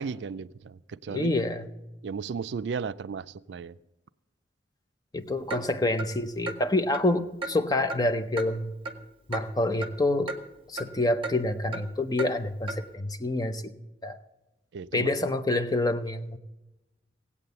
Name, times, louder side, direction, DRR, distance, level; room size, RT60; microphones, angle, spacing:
voice 1, 0.0-1.3 2.0-3.8 14.7-15.1, right 5 dB, 70° right, 0.4 m, -35 dB
voice 2, 1.1-1.7 5.1-8.7 9.3-10.3 10.7-13.7 14.0-14.2 14.9-16.4, left 2 dB, 20° left, 0.6 m, -27 dB
Clock, 5.5-5.6 6.0-6.1 6.5-6.6 6.9-7.1 7.4-7.5 7.9-8.0 8.4-8.5 8.9-9.0 9.3-9.5 9.8-9.9 10.3-10.4 10.8-10.9 11.2-11.4 11.7-11.8 12.2-12.3 12.7-12.8, right 3 dB, 30° right, 1.0 m, -34 dB
17.0 x 8.4 x 6.8 m
head